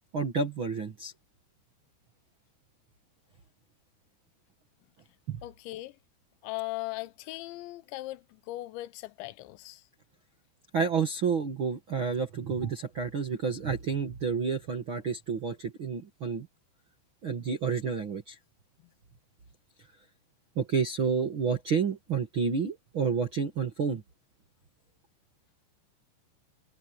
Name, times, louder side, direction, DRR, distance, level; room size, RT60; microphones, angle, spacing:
voice 1, 0.1-1.1 5.3-5.4 10.7-16.5 17.2-18.4 20.5-24.0, right 5 dB, 60° right, 1.3 m, -30 dB
voice 2, 5.4-5.9 6.4-9.8, left 19 dB, 90° left, 3.1 m, -38 dB
omnidirectional pair, 5.1 m